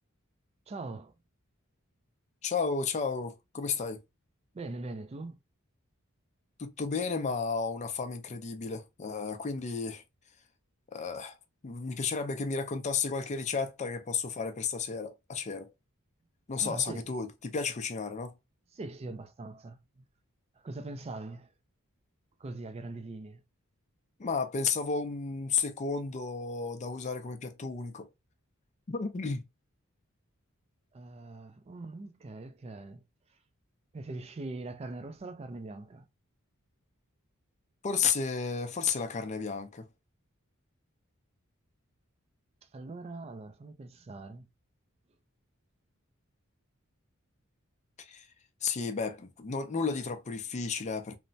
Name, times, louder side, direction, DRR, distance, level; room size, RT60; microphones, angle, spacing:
voice 1, 0.7-1.1 4.5-5.4 16.6-17.0 18.7-20.0 20.6-21.5 22.4-23.4 30.9-33.0 33.9-36.1 42.6-44.5, right 2 dB, 30° right, 0.4 m, -42 dB
voice 2, 2.4-4.0 6.6-10.0 10.9-11.4 11.6-15.7 16.5-18.3 24.2-28.1 28.9-29.4 37.8-39.9 48.0-48.3 48.6-51.2, left 5 dB, 35° left, 0.4 m, -33 dB
3.2 x 2.0 x 2.6 m
head